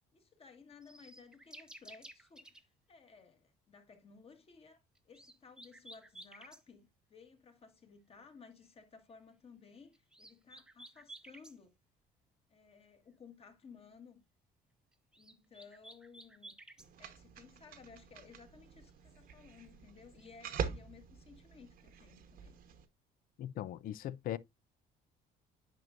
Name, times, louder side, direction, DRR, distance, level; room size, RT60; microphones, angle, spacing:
voice 1, 0.1-11.7 12.5-14.2 15.2-16.5 17.0-22.6, left 5 dB, 35° left, 1.6 m, -58 dB
sound 1, 0.8-2.6 5.0-6.6 9.9-11.6 14.9-16.9 20.0-20.5, right 1 dB, 5° right, 0.7 m, -54 dB
sound 2, 16.8-22.9, right 7 dB, 60° right, 1.1 m, -45 dB
voice 2, 23.4-24.4, left 12 dB, 60° left, 0.4 m, -39 dB
9.0 x 5.3 x 2.5 m
cardioid pair, 110°, 17 cm